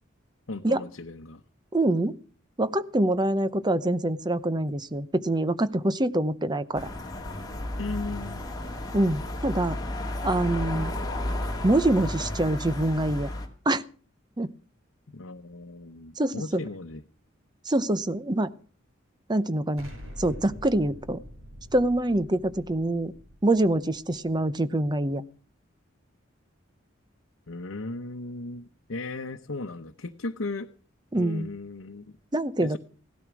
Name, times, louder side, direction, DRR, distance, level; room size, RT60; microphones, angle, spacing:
voice 1, 0.5-1.4 7.8-8.5 15.1-17.0 27.5-30.7 31.1-32.2 32.6-32.8, left 3 dB, 90° left, 4 dB, 0.9 m, -36 dB
voice 2, 1.7-2.2 2.6-6.9 8.9-9.8 10.2-10.9 11.6-13.3 13.7-13.8 14.4-14.5 16.2-16.6 17.6-18.5 19.3-19.9 20.2-21.2 21.7-23.1 23.4-25.2 31.1-31.5 32.3-32.8, right 1 dB, 20° right, 14 dB, 0.8 m, -25 dB
sound 1, 6.7-13.5, left 1 dB, 20° left, 2.4 m, -33 dB
Explosion, 19.8-24.6, equal, 90° right, 6.9 m, -45 dB
16.5 x 12.5 x 6.1 m, 0.41 s
head